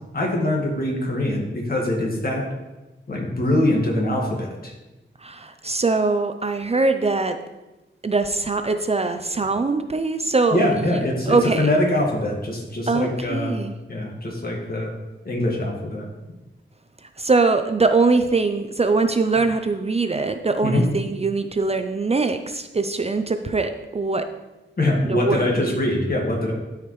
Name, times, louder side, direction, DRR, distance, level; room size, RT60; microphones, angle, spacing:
voice 1, 0.1-2.4 3.1-4.7 10.5-13.6 13.9-15.0 15.3-16.1 20.6-20.8 24.8-26.5, left 1 dB, 50° left, 0 dB, 1.7 m, -23 dB
voice 2, 5.2-7.4 8.0-11.7 12.9-13.7 17.0-24.3 25.0-25.7, right 3 dB, 30° right, 7 dB, 0.4 m, -22 dB
12.5 x 4.9 x 3.1 m, 1.1 s
wide cardioid pair, 120°, 20 cm